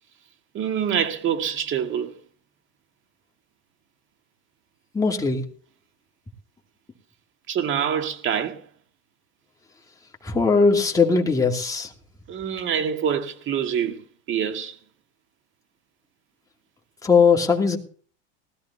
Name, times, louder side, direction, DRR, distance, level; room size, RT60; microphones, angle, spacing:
voice 1, 0.5-2.2 7.5-8.6 12.3-14.8, right 8 dB, 35° right, 2.0 m, -26 dB
voice 2, 4.9-5.4 10.2-11.9 17.0-17.8, left 4 dB, 10° left, 2.5 m, -19 dB
20.0 x 13.5 x 2.8 m
supercardioid pair, 120°, 35 cm